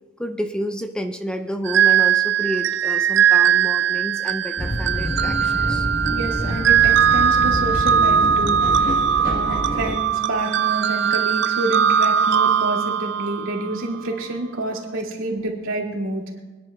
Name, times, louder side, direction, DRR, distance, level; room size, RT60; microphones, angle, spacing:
voice 1, 0.2-5.9 14.1-14.2, equal, 5° left, 6 dB, 0.6 m, -30 dB
sound 1, 1.6-14.0, right 8 dB, 65° right, 0.5 m, -20 dB
Circle Line Ambience, 4.6-10.0, equal, 50° left, 1.2 m, -27 dB
voice 2, 6.1-8.9 9.2-16.4, right 2 dB, 85° right, -1 dB, 2.4 m, -28 dB
25.0 x 10.5 x 2.3 m, 1.3 s
head